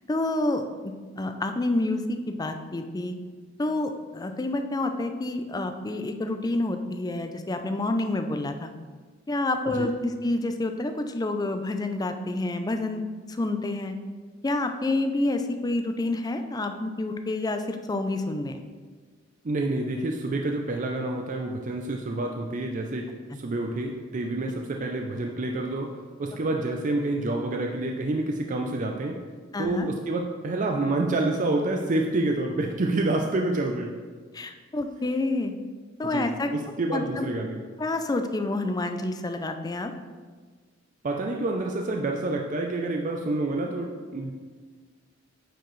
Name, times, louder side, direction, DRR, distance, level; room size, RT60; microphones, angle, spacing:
voice 1, 0.1-3.1 3.6-8.7 9.3-13.0 13.3-13.9 14.4-18.6 29.5-29.9 34.3-35.5 36.0-36.5 36.9-37.3 37.8-39.9, left 2 dB, 20° left, 7 dB, 0.4 m, -28 dB
voice 2, 19.4-29.2 29.6-33.9 36.1-37.6 41.0-44.3, right 2 dB, 40° right, 2 dB, 0.5 m, -28 dB
8.9 x 4.6 x 3.2 m, 1.5 s
head